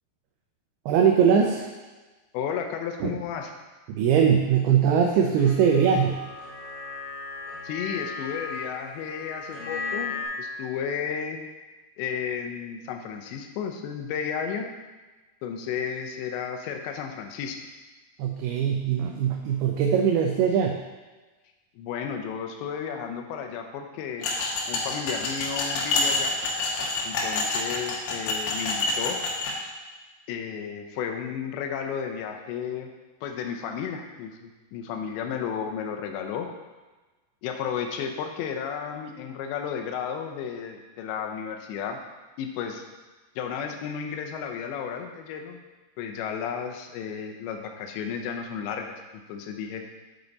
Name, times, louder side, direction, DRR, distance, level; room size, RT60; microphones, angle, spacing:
voice 1, 0.9-1.7 3.0-3.1 3.9-6.2 18.2-20.8, right 7 dB, 80° right, 2 dB, 2.3 m, -21 dB
voice 2, 2.3-3.5 7.6-11.4 12.0-14.7 15.4-17.6 21.8-24.3 24.7-26.4 27.0-29.2 30.3-32.9 33.2-36.5 37.4-42.0 42.4-42.8 43.4-45.6 46.0-49.0 49.3-49.9, left 7 dB, 90° left, 4 dB, 3.0 m, -33 dB
sound 1, 5.4-10.2, left 4 dB, 55° left, 2.8 m, -36 dB
sound 2, 24.2-29.5, left 2 dB, 70° left, 2.8 m, -27 dB
8.7 x 6.0 x 4.0 m, 1.2 s
omnidirectional pair, 5.0 m